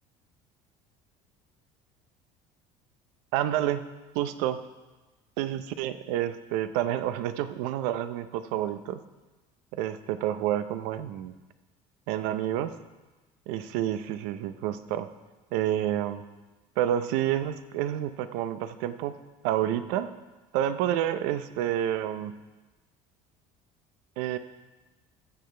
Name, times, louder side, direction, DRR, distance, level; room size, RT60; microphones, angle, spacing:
voice 1, 3.3-3.8 4.1-4.6 5.4-9.0 9.7-11.3 12.1-12.8 13.5-15.1 15.5-16.2 16.8-19.1 19.4-20.1 20.5-22.3 24.2-24.4, right 11 dB, 80° right, 11 dB, 0.6 m, -29 dB
14.0 x 6.8 x 3.3 m, 1.2 s
supercardioid pair, 85°, 16 cm